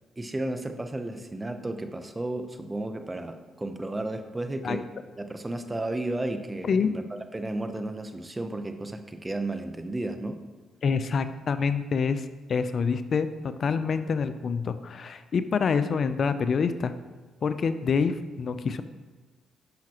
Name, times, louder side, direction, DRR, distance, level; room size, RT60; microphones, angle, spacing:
voice 1, 0.2-4.9 5.2-7.0 7.3-10.5, right 2 dB, 20° right, 8 dB, 0.7 m, -33 dB
voice 2, 10.8-16.9 17.4-18.8, left 5 dB, 55° left, 11 dB, 0.4 m, -26 dB
10.5 x 5.8 x 2.9 m, 1.3 s
supercardioid pair, 60°, 0 cm